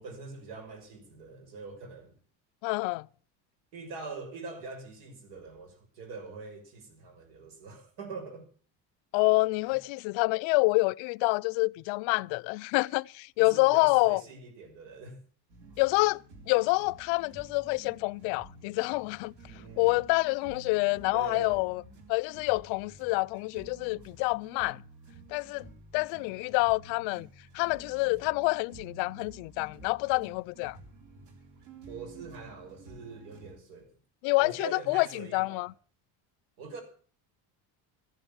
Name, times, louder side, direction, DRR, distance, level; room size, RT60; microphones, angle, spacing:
voice 1, 0.0-2.2 3.7-8.5 9.7-9.8 13.4-15.2 19.4-20.0 21.1-21.6 31.9-33.9 34.4-35.7 36.6-36.8, right 4 dB, 80° right, 6.2 m, -43 dB
voice 2, 2.6-3.1 9.1-14.2 15.8-19.3 19.8-21.8 22.1-24.8 25.3-25.7 25.9-27.3 27.5-30.8 34.2-35.7, left 26 dB, 80° left, 0.6 m, -27 dB
sound 1, 15.5-33.6, right 3 dB, 60° right, 3.7 m, -52 dB
14.0 x 11.0 x 7.0 m
cardioid pair, 145°, 46 cm